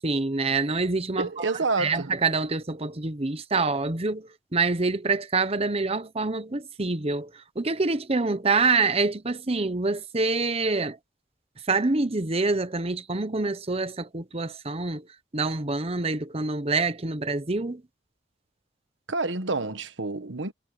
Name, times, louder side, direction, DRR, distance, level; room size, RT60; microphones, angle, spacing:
voice 1, 0.0-1.5 1.8-11.0 11.7-15.1 15.3-17.8, right 3 dB, 35° right, 1.1 m, -26 dB
voice 2, 1.2-2.1 19.1-20.5, right 3 dB, 80° right, 1.3 m, -28 dB
head